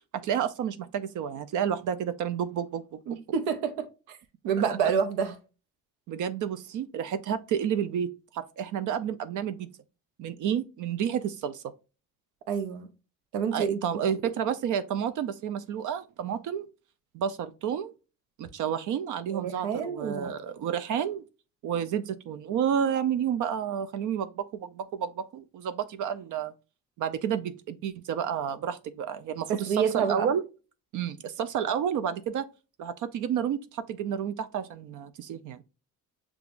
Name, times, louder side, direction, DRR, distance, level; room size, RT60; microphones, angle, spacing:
voice 1, 0.1-3.0 6.1-9.7 10.2-11.6 13.5-16.6 17.1-17.9 18.4-21.2 21.6-26.5 27.0-30.4 30.9-32.5 32.8-35.6, right 8 dB, 60° right, 0.5 m, -30 dB
voice 2, 3.1-4.2 4.4-5.4 12.5-12.9 13.3-13.8 19.3-20.3 29.7-30.3, right 6 dB, 90° right, 0.8 m, -28 dB
6.8 x 2.4 x 2.4 m
cardioid pair, 95°, 35 cm